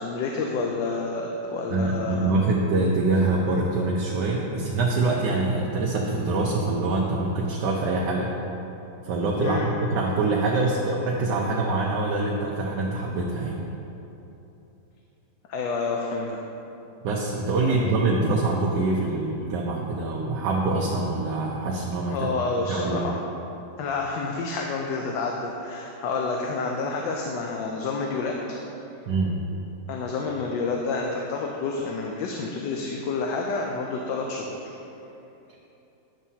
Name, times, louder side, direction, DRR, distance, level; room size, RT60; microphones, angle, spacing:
voice 1, 0.0-2.3 9.4-9.7 15.5-16.4 17.6-17.7 22.1-23.2 23.8-28.4 29.9-34.7, left 4 dB, 80° left, 0 dB, 1.3 m, -29 dB
voice 2, 1.7-8.3 9.0-13.6 17.0-22.3 22.7-23.1 29.1-29.3, right 2 dB, 75° right, -2 dB, 1.3 m, -25 dB
10.5 x 7.2 x 2.8 m, 3.0 s
omnidirectional pair, 2.0 m